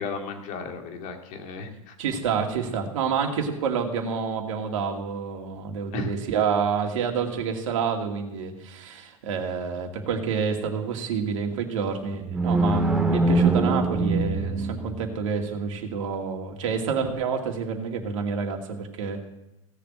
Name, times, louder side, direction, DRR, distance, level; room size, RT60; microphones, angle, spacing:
voice 1, 0.0-2.0 5.9-6.1, left 4 dB, 45° left, 4 dB, 2.5 m, -34 dB
voice 2, 2.0-19.3, right 6 dB, 65° right, 3 dB, 2.4 m, -28 dB
sound 1, 12.2-15.2, right 2 dB, 5° right, 2.0 m, -23 dB
16.5 x 6.9 x 7.7 m, 0.89 s
hypercardioid pair, 90°, 18 cm